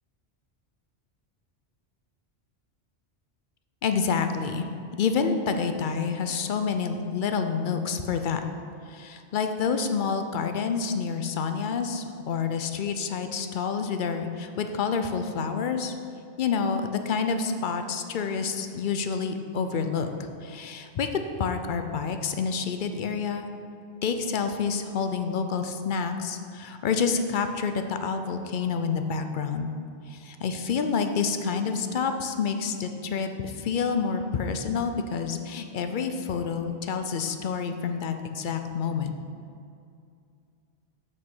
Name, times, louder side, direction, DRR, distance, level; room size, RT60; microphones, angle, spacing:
voice 1, 3.8-4.7 5.0-8.4 8.8-15.9 16.4-23.5 24.0-29.7 30.1-39.1, left 5 dB, 55° left, 7 dB, 0.6 m, -28 dB
6.7 x 6.1 x 6.0 m, 2.4 s
omnidirectional pair, 1.2 m